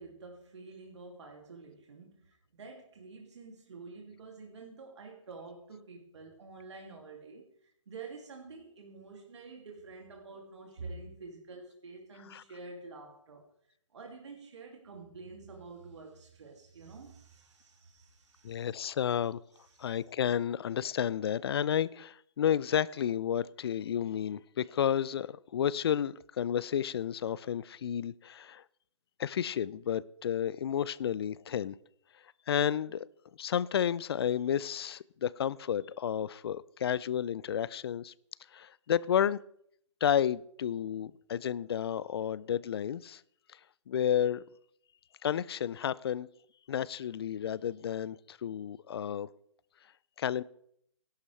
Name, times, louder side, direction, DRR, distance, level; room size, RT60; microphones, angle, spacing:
voice 1, 0.0-13.5 13.9-18.7 19.5-20.0, right 3 dB, 65° right, 2.6 m, -48 dB
voice 2, 18.4-19.4 19.8-28.6 29.2-31.7 32.5-33.1 33.4-38.1 38.5-39.4 40.0-43.2 43.9-44.4 45.2-46.3 46.7-49.3 50.2-50.4, left 9 dB, 50° left, 0.5 m, -31 dB
18.5 x 11.5 x 3.3 m
figure-of-eight pair, 135°, 16 cm